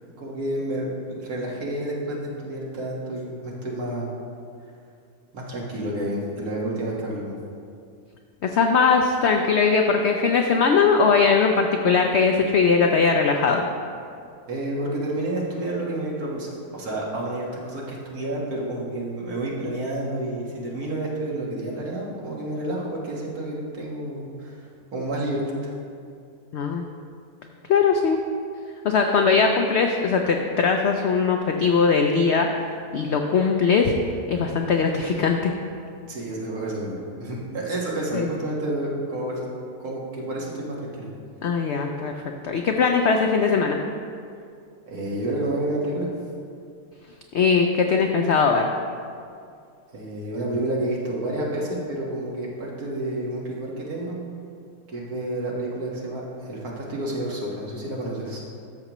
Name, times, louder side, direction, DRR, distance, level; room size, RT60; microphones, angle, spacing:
voice 1, 0.2-4.1 5.3-7.4 14.5-25.7 36.1-39.5 39.8-41.1 44.9-46.1 49.9-54.2 54.9-58.4, right 1 dB, 65° right, -4 dB, 2.0 m, -30 dB
voice 2, 8.4-13.7 26.5-26.9 27.7-28.2 28.8-32.7 32.9-33.9 34.3-35.5 38.1-38.3 41.4-43.8 47.3-48.7, left 5 dB, 80° left, 3 dB, 0.6 m, -20 dB
13.0 x 6.6 x 3.0 m, 2.4 s
omnidirectional pair, 1.7 m